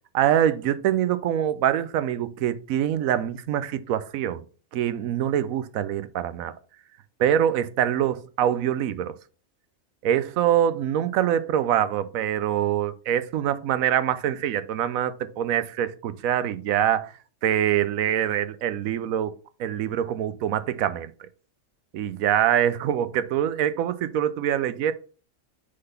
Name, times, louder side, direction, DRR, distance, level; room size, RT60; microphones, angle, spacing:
voice 1, 0.1-4.4 4.7-6.5 7.2-9.1 10.0-17.1 17.4-19.3 19.6-21.1 21.9-24.9, right 10 dB, 85° right, 1.0 m, -24 dB
6.4 x 3.9 x 5.7 m
omnidirectional pair, 1.4 m